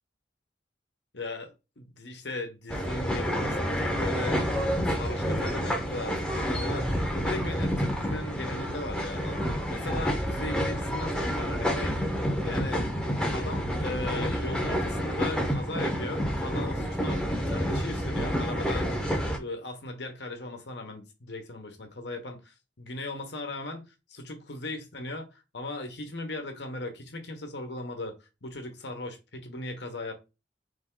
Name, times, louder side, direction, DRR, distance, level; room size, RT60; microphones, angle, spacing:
voice 1, 1.1-12.0 12.4-12.9 13.3-19.1 19.4-28.1 28.4-30.1, left 2 dB, 70° left, 1.2 m, -38 dB
sound 1, 2.7-19.4, equal, 5° left, 0.8 m, -29 dB
3.6 x 3.4 x 3.8 m
head